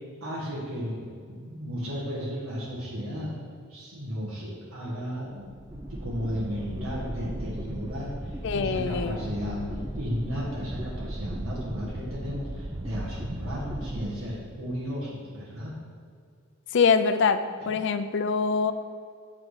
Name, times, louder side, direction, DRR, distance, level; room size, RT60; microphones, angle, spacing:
voice 1, 0.2-1.0 1.3-3.3 3.7-9.6 9.9-15.8 17.6-17.7, equal, 85° right, -6 dB, 1.4 m, -34 dB
sound 1, 5.3-14.8, right 1 dB, 15° right, 0.4 m, -37 dB
voice 2, 8.4-9.2 16.7-17.4 17.7-18.7, left 5 dB, 60° left, 10 dB, 0.4 m, -23 dB
8.5 x 3.8 x 4.8 m, 2.2 s
head